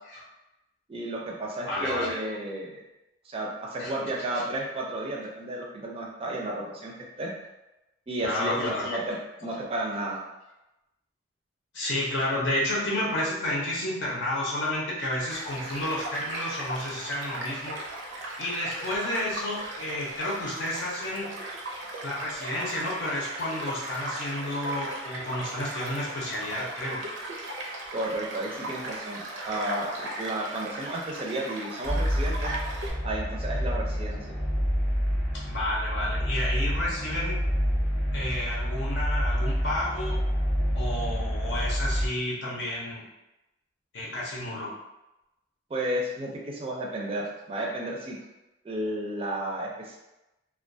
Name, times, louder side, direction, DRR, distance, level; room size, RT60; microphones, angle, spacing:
voice 1, 0.9-2.8 3.3-7.3 8.1-10.2 27.9-32.5 33.0-34.4 45.7-48.2 48.6-50.0, right 1 dB, 30° right, -2 dB, 0.4 m, -33 dB
voice 2, 1.7-2.2 3.8-4.0 4.3-4.4 8.2-9.0 9.5-9.6 11.7-17.8 18.4-21.3 22.0-27.0 35.5-37.4 38.1-40.2 40.7-43.0 43.9-44.7, left 1 dB, 70° left, -5 dB, 0.6 m, -31 dB
Child speech kid speaking / Stream / Car passing by, 15.3-32.9, right 1 dB, 85° right, 0.5 m, -37 dB
sound 1, 31.8-42.1, equal, 20° left, 0.7 m, -28 dB
2.2 x 2.2 x 2.5 m, 0.97 s
head